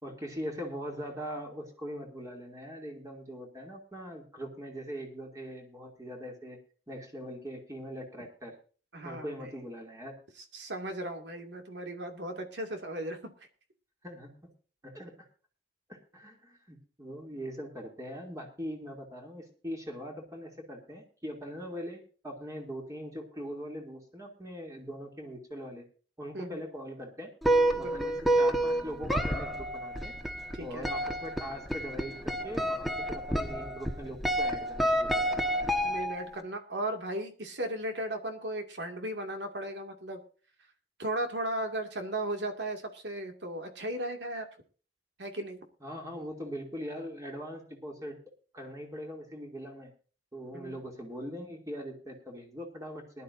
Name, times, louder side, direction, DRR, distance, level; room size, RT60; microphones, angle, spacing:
voice 1, 0.0-6.6 6.9-8.6 9.0-10.2 14.0-14.5 14.8-15.3 15.9-25.8 26.2-27.3 27.8-30.1 30.6-35.4 45.8-48.2 48.5-49.9 50.3-53.2, equal, 20° right, 0 dB, 2.7 m, -41 dB
voice 2, 8.9-9.5 10.5-13.2 26.3-26.6 27.8-28.2 30.5-30.9 35.8-40.2 41.0-44.5 45.2-45.6 50.5-50.8, right 1 dB, 85° right, 5 dB, 2.3 m, -36 dB
sound 1, 27.4-36.4, right 1 dB, ahead, 1.3 m, -29 dB
21.0 x 11.5 x 2.7 m, 0.38 s
head